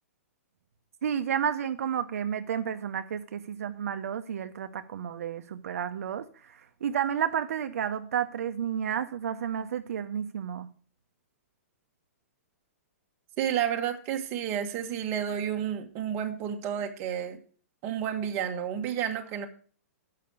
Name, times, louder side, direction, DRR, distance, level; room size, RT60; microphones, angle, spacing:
voice 1, 1.0-10.7, right 8 dB, 70° right, 8 dB, 0.7 m, -31 dB
voice 2, 13.4-17.4 17.8-19.5, right 9 dB, 30° right, 4 dB, 1.1 m, -31 dB
6.8 x 5.7 x 6.5 m, 0.43 s
hypercardioid pair, 160°, 8 cm